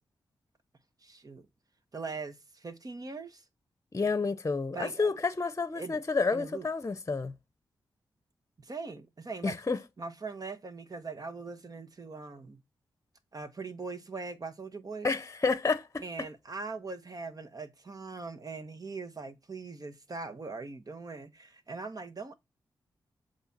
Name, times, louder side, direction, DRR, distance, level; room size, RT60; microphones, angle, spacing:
voice 1, 1.0-1.5 1.9-3.4 4.7-5.2 5.8-6.0 6.3-6.7 8.6-9.5 10.0-12.6 13.3-15.1 16.0-22.3, right 4 dB, 45° right, 1.3 m, -41 dB
voice 2, 3.9-7.3 9.4-9.8 15.0-16.0, left 4 dB, 30° left, 0.8 m, -30 dB
8.0 x 3.3 x 4.2 m
supercardioid pair, 40°, 9 cm